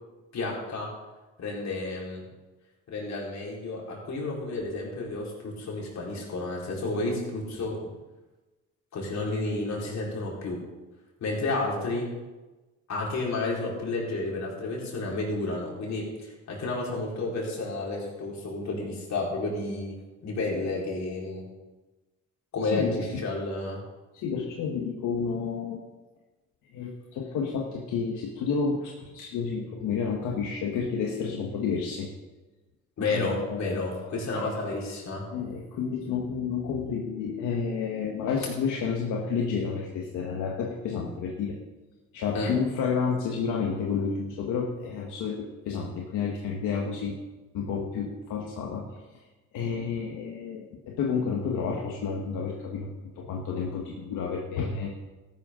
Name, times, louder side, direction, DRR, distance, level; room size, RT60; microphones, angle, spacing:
voice 1, 0.3-0.9 1.4-2.2 2.9-7.8 8.9-10.6 11.2-12.1 12.9-19.9 20.2-21.4 22.5-23.8 33.0-35.2 42.3-42.5, left 2 dB, 65° left, -3 dB, 4.6 m, -31 dB
voice 2, 22.7-23.2 24.1-25.8 26.7-32.1 33.1-34.1 35.3-41.5 42.1-47.2 47.5-49.0 49.5-52.9 53.1-54.9, left 5 dB, 90° left, -1 dB, 1.5 m, -30 dB
14.0 x 12.0 x 3.9 m, 1.2 s
cardioid pair, 90°, 30 cm